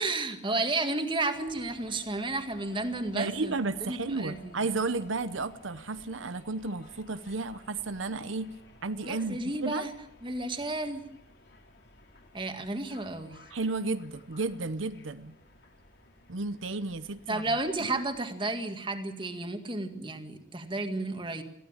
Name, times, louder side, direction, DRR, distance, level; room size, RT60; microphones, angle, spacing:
voice 1, 0.0-3.5 3.8-4.6 9.0-9.9 10.2-11.0 12.3-13.4 17.3-21.4, right 2 dB, 25° right, 7 dB, 1.9 m, -32 dB
sound 1, 1.3-18.2, left 2 dB, 55° left, 3.8 m, -55 dB
voice 2, 3.1-8.6 8.8-9.9 13.5-15.4 16.3-17.9, right 3 dB, 85° right, 12 dB, 0.9 m, -33 dB
22.0 x 15.5 x 8.8 m, 0.81 s
head